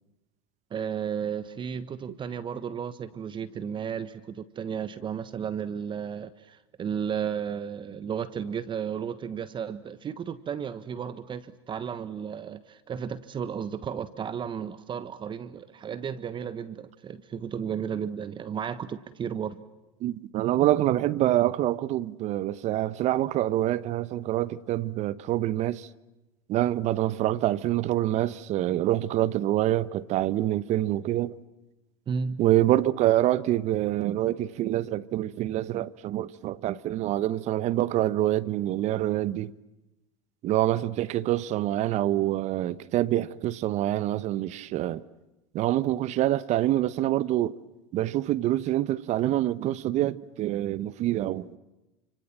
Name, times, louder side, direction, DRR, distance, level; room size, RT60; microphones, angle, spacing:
voice 1, 0.7-19.6 32.1-32.4, right 7 dB, 30° right, 1.4 m, -33 dB
voice 2, 20.0-25.9 26.5-31.4 32.4-39.5 40.4-45.0 45.5-47.6 47.9-51.6, right 14 dB, 45° right, 1.1 m, -26 dB
29.5 x 26.5 x 7.5 m
hypercardioid pair, 95°, 16 cm